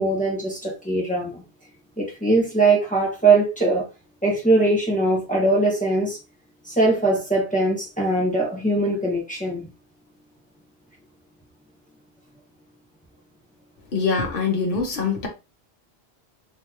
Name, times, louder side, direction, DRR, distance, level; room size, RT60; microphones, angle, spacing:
voice 1, 0.0-1.4 2.0-3.8 4.2-6.2 6.6-9.7, right 2 dB, 10° left, 1.3 m, -21 dB
voice 2, 13.9-15.3, left 4 dB, 60° left, 1.3 m, -23 dB
3.7 x 3.1 x 3.0 m
omnidirectional pair, 1.1 m